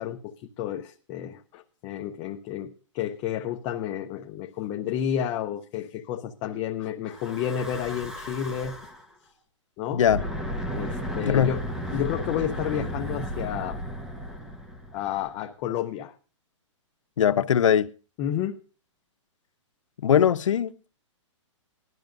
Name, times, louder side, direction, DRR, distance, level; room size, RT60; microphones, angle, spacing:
voice 1, 0.0-8.8 9.8-10.0 10.7-11.6 11.9-13.8 14.9-16.1 18.2-18.6, left 10 dB, 15° left, 0.5 m, -31 dB
Breathing / Wind, 7.1-9.1 9.9-15.3, equal, 5° right, 0.8 m, -34 dB
voice 2, 9.9-10.2 11.3-11.5 17.2-17.9 20.0-20.9, left 9 dB, 75° left, 0.8 m, -21 dB
18.5 x 12.5 x 2.5 m
hypercardioid pair, 175°, 16 cm